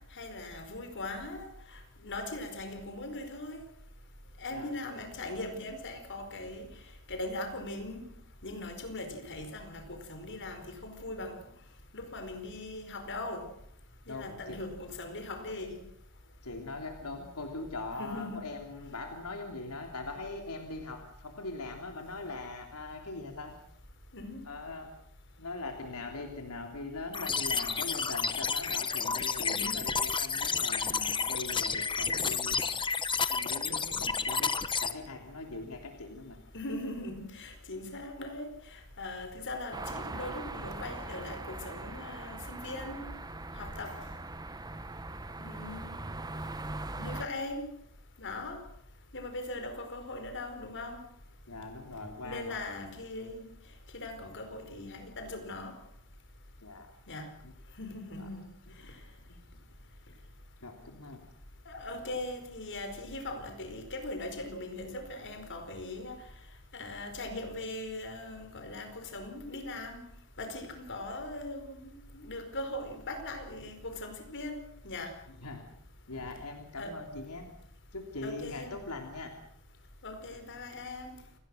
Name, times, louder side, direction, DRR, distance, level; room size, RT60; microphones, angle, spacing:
voice 1, 0.1-3.6 4.4-6.7 7.1-8.1 8.4-11.4 11.9-13.5 14.1-15.8 18.0-18.5 24.1-24.5 29.5-29.9 33.6-34.2 36.5-43.1 43.5-44.0 45.4-46.1 47.0-47.7 48.2-48.6 49.1-51.0 52.2-53.4 53.9-55.7 57.1-57.3 57.8-58.5 61.6-66.2 66.7-70.0 70.4-75.2 76.8-77.2 78.2-78.8 80.0-81.2, left 2 dB, 55° left, 4.8 m, -40 dB
voice 2, 14.1-14.6 16.4-23.5 24.4-24.9 25.4-32.8 33.3-33.7 34.0-34.5 34.8-36.4 51.5-52.6 56.6-56.9 57.4-57.5 58.2-58.3 59.3-59.4 60.6-61.2 75.4-75.6 76.1-77.5 77.9-79.3, left 3 dB, 85° left, 3.1 m, -41 dB
sound 1, 27.1-34.9, left 5 dB, 20° left, 1.1 m, -31 dB
sound 2, 39.7-47.3, right 2 dB, 20° right, 1.1 m, -41 dB
28.5 x 18.5 x 6.4 m
head